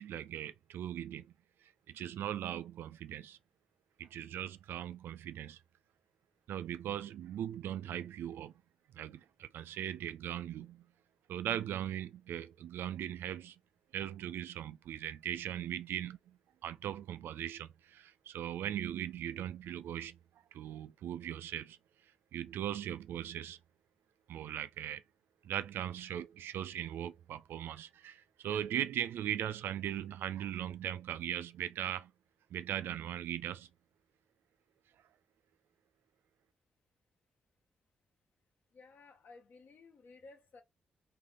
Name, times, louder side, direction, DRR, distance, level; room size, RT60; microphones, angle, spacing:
voice 1, 0.0-1.3 1.6-3.4 4.0-5.6 6.5-8.5 8.9-10.8 11.3-13.6 13.9-16.4 16.6-20.2 20.5-21.8 22.3-23.6 24.3-25.0 25.4-32.1 32.5-33.7, right 10 dB, 75° right, 0.4 m, -39 dB
voice 2, 38.7-40.6, left 3 dB, 65° left, 1.5 m, -56 dB
3.3 x 3.2 x 3.7 m
hypercardioid pair, 45°, 4 cm